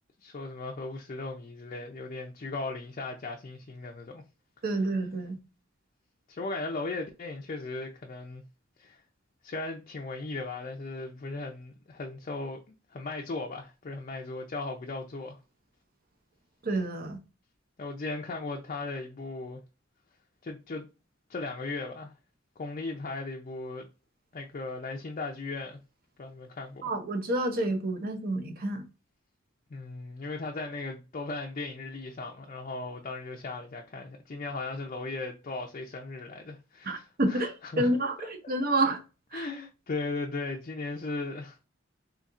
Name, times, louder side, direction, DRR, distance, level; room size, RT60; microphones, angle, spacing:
voice 1, 0.2-4.2 6.3-8.4 8.8-9.0 9.4-15.4 17.8-19.6 20.4-20.9 21.3-22.1 22.6-23.9 24.3-25.8 26.2-26.9 29.7-37.9 39.3-41.6, left 3 dB, 40° left, 0.5 m, -37 dB
voice 2, 4.6-5.4 16.6-17.2 26.8-28.8 36.8-39.0 39.3-39.5, right 1 dB, 50° right, 0.8 m, -29 dB
4.1 x 2.8 x 2.5 m
head